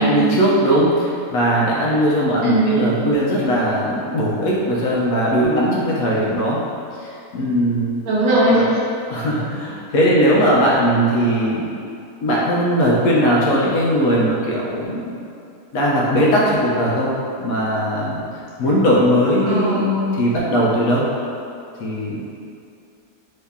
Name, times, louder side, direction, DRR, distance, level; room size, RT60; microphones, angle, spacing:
voice 1, 0.0-6.6 7.0-8.0 8.5-8.7 9.1-11.7 12.2-15.2 15.7-17.1 17.4-18.2 18.6-21.0 21.8-22.2, equal, 70° left, -5 dB, 1.0 m, -19 dB
voice 2, 2.4-2.8 8.1-8.6 19.4-20.1, right 1 dB, 70° right, -7 dB, 1.2 m, -18 dB
3.1 x 2.8 x 3.5 m, 2.6 s
omnidirectional pair, 1.6 m